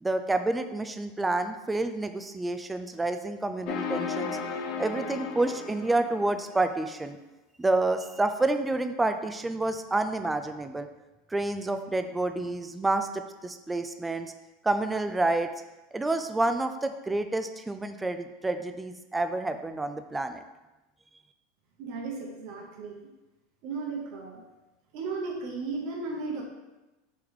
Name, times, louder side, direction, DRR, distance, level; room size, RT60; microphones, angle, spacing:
voice 1, 0.0-4.4 4.8-7.2 7.6-10.9 11.3-14.3 14.6-15.5 15.9-20.4, right 2 dB, 10° right, 8 dB, 0.3 m, -29 dB
sound 1, 3.7-6.6, left 5 dB, 50° left, 0.5 m, -35 dB
voice 2, 21.8-22.9 23.6-24.4 24.9-26.4, right 4 dB, 55° right, -1 dB, 0.9 m, -35 dB
4.5 x 3.2 x 3.6 m, 1.0 s
hypercardioid pair, 85°, 0 cm